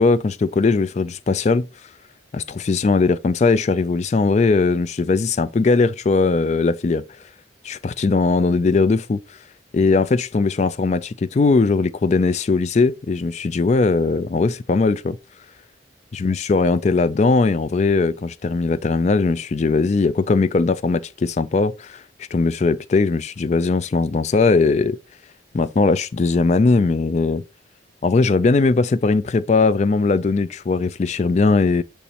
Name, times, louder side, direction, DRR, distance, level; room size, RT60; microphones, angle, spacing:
voice 1, 0.0-1.7 2.3-7.0 7.6-9.2 9.7-15.2 16.1-22.0 22.3-25.0 25.5-27.4 28.0-31.8, left 3 dB, 35° left, 0.3 m, -19 dB
6.9 x 5.2 x 2.9 m
head